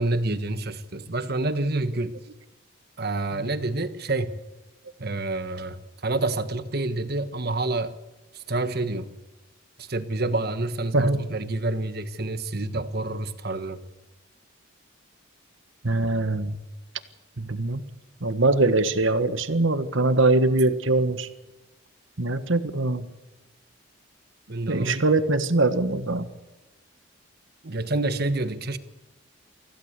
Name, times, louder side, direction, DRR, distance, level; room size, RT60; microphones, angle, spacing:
voice 1, 0.0-2.2 3.0-4.4 5.0-5.8 6.0-7.9 8.5-9.1 9.8-13.8 24.5-25.0 27.6-28.8, right 2 dB, 50° right, 1.4 m, -28 dB
voice 2, 15.8-16.6 17.4-17.8 18.2-21.3 22.2-23.1 24.7-26.3, right 2 dB, 70° right, 1.5 m, -22 dB
25.5 x 16.0 x 6.8 m
head